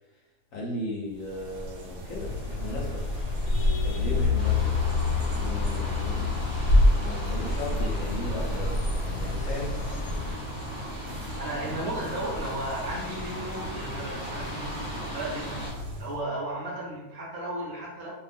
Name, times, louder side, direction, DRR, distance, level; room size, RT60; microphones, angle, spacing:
voice 1, 0.5-3.1 3.8-4.8 5.3-6.5 7.0-9.8, left 1 dB, 65° left, -4 dB, 1.0 m, -36 dB
sound 1, 1.1-16.2, equal, 85° right, 1.2 m, -36 dB
sound 2, 2.2-10.4, left 3 dB, 85° left, 1.2 m, -27 dB
sound 3, 4.4-15.7, equal, 20° right, 0.8 m, -38 dB
voice 2, 11.4-15.6 16.0-18.1, right 1 dB, 65° right, -5 dB, 0.9 m, -34 dB
2.6 x 2.3 x 2.5 m, 1.1 s
omnidirectional pair, 1.7 m